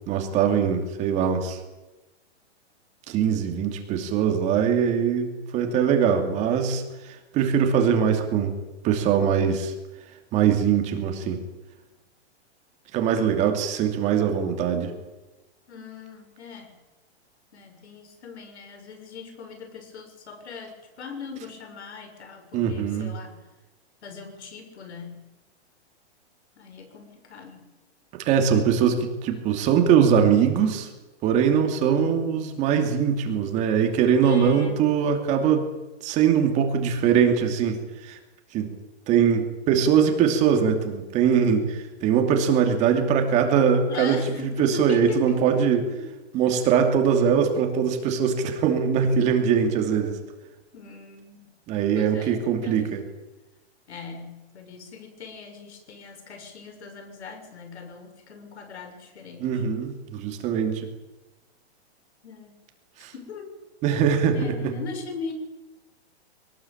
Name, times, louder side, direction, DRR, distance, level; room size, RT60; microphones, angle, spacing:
voice 1, 0.1-1.6 3.1-8.5 8.8-9.7 10.3-11.4 12.9-14.9 22.5-23.1 28.2-30.9 31.2-35.7 36.0-38.2 38.5-38.7 39.1-45.8 46.3-50.2 51.7-53.0 59.4-60.9 63.0-63.1 63.8-64.7, right 7 dB, 20° right, 4 dB, 2.7 m, -22 dB
voice 2, 15.7-16.7 17.5-23.4 24.0-25.2 26.6-27.7 34.2-34.8 43.9-45.6 46.0-46.4 50.7-51.5 51.9-52.9 53.9-59.6 62.2-62.6 63.1-63.6 64.3-65.3, left 4 dB, 75° left, 6 dB, 6.9 m, -40 dB
22.5 x 19.5 x 8.8 m, 1.1 s
hypercardioid pair, 170°, 34 cm